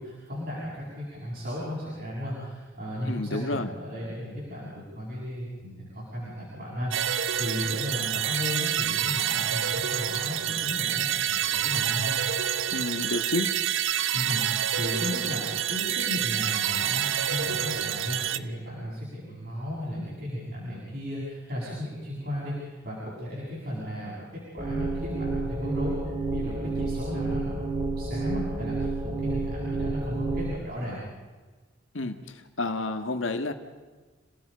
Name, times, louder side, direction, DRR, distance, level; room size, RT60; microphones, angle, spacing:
voice 1, 0.0-12.1 14.1-31.0, left 1 dB, 50° right, -8 dB, 7.7 m, -35 dB
voice 2, 3.1-3.7 12.7-13.5 31.9-32.2 32.6-33.5, left 2 dB, 80° left, 7 dB, 1.6 m, -29 dB
sound 1, 6.9-18.4, right 10 dB, 80° right, 0.7 m, -28 dB
sound 2, 24.6-30.6, right 3 dB, 25° right, 1.6 m, -30 dB
29.5 x 18.5 x 5.2 m, 1.3 s
head